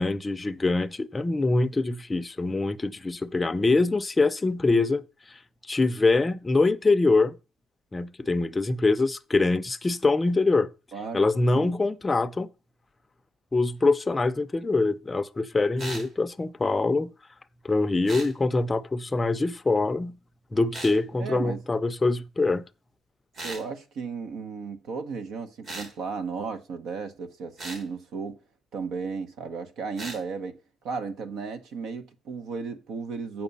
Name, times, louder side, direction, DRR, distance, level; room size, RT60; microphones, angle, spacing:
voice 1, 0.0-5.0 5.7-7.4 7.9-10.7 11.1-12.5 13.5-17.1 17.6-20.2 20.5-22.6, left 3 dB, 15° left, 0.5 m, -24 dB
voice 2, 10.9-11.3 11.5-11.7 21.2-21.6 23.4-28.4 28.7-30.6 30.8-33.4, right 5 dB, 75° right, 1.0 m, -34 dB
sound 1, 15.8-16.1 18.1-18.3 20.7-21.0 23.3-23.7 25.6-25.9 27.6-27.8 30.0-30.2, right 2 dB, 50° right, 2.7 m, -37 dB
8.2 x 6.0 x 5.4 m
cardioid pair, 145°, 0 cm